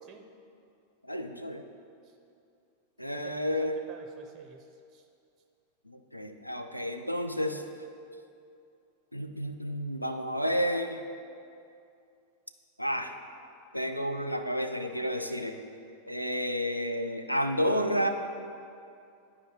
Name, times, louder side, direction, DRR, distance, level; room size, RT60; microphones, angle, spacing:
voice 1, 1.0-1.6 3.0-3.8 5.9-7.6 9.1-11.0 12.8-13.1 13.7-15.6 16.1-18.1, equal, 90° left, 6 dB, 0.4 m, -31 dB
voice 2, 3.1-5.1 16.3-16.4, right 6 dB, 25° right, 4 dB, 0.5 m, -51 dB
11.5 x 4.8 x 2.9 m, 2.5 s
figure-of-eight pair, 90°, 0 cm